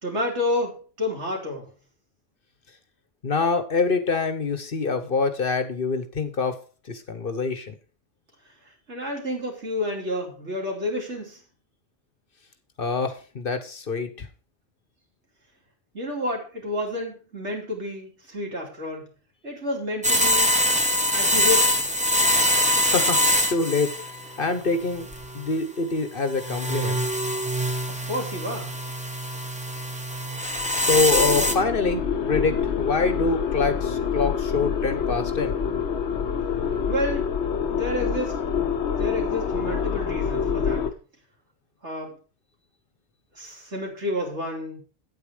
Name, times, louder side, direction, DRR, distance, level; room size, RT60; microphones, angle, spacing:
voice 1, 0.0-1.7 8.9-11.4 15.9-19.1 19.4-20.6 21.1-21.8 27.9-28.7 36.9-37.3 37.7-38.4 39.0-40.9 41.8-42.2 43.4-44.8, left 1 dB, 75° right, 0 dB, 3.4 m, -30 dB
voice 2, 3.2-6.6 6.9-7.7 12.8-14.3 22.8-23.2 23.5-23.9 24.4-25.1 25.3-27.0 30.7-35.6, left 4 dB, 50° left, 9 dB, 1.3 m, -25 dB
sound 1, 20.0-24.4 24.9-25.5 26.3-31.5, equal, 5° right, 1.0 m, -23 dB
sound 2, 30.5-40.9, left 7 dB, 70° left, 1.2 m, -27 dB
8.8 x 8.7 x 5.0 m, 0.36 s
omnidirectional pair, 1.2 m